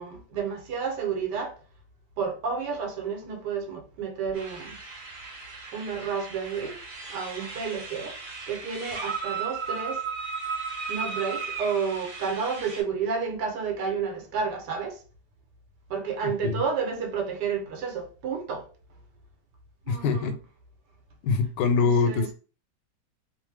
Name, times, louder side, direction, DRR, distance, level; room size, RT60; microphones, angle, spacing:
voice 1, 0.0-1.6 2.2-4.8 5.7-6.8 7.1-8.2 8.5-10.0 10.9-15.0 15.9-18.7 19.9-20.3 21.8-22.3, right 5 dB, 90° right, 1.4 m, -31 dB
sound 1, 4.3-12.8, right 5 dB, 50° right, 1.1 m, -36 dB
voice 2, 16.2-16.6 19.9-20.4 21.2-22.3, left 4 dB, 90° left, 1.2 m, -24 dB
2.9 x 2.0 x 3.2 m
omnidirectional pair, 1.8 m